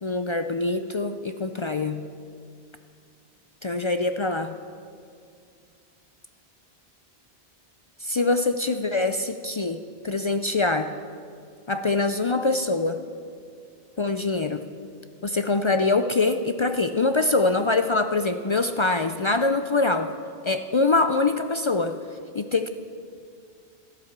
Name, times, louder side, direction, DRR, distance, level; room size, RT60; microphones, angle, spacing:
voice 1, 0.0-2.1 3.6-4.6 8.0-10.9 11.7-13.0 14.0-14.7 15.2-20.1 20.4-22.0 22.3-22.7, left 3 dB, 45° left, 8 dB, 0.4 m, -24 dB
13.0 x 12.0 x 7.3 m, 2.3 s
omnidirectional pair, 1.1 m